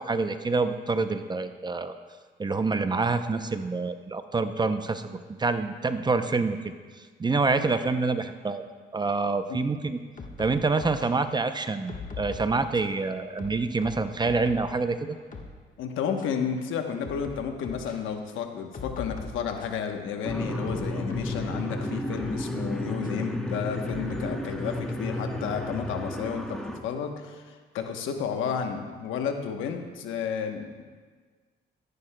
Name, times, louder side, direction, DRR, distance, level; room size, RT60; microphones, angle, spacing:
voice 1, 0.0-2.0 2.4-6.7 7.2-8.6 8.9-10.0 10.4-11.9 12.2-15.2, right 3 dB, 20° right, 9 dB, 0.5 m, -27 dB
sound 1, 10.2-11.1 11.9-12.9 13.4-14.7 15.1-15.5 16.2-16.3 17.0-17.9 18.7-19.8 20.2-21.6 22.2-22.4 23.0-23.1 23.9-24.6, left 4 dB, 40° left, 1.3 m, -41 dB
voice 2, 15.8-26.4 26.8-30.8, left 7 dB, 85° left, 5 dB, 1.0 m, -32 dB
sound 2, 20.2-26.8, left 1 dB, 5° left, 0.9 m, -32 dB
13.5 x 10.5 x 2.2 m, 1.5 s
cardioid pair, 90°, 20 cm